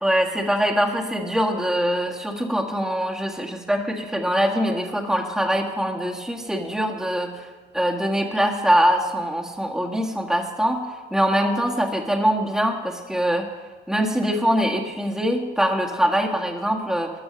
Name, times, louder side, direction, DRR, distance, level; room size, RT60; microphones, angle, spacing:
voice 1, 0.0-7.3 7.7-10.8 11.1-13.5 13.9-17.1, equal, 5° right, 0 dB, 1.5 m, -23 dB
13.0 x 6.1 x 6.7 m, 1.4 s
cardioid pair, 90°, 20 cm